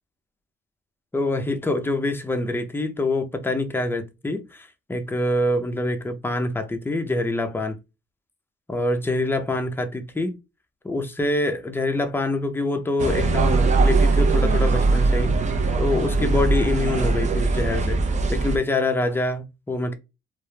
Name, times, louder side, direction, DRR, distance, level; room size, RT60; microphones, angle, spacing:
voice 1, 1.1-7.8 8.7-10.4 10.8-15.3 15.8-18.0 18.3-19.9, left 2 dB, 10° left, 0.5 m, -25 dB
sound 1, 13.0-18.6, right 3 dB, 35° right, 0.5 m, -20 dB
2.2 x 2.1 x 3.0 m
cardioid pair, 90°, 20 cm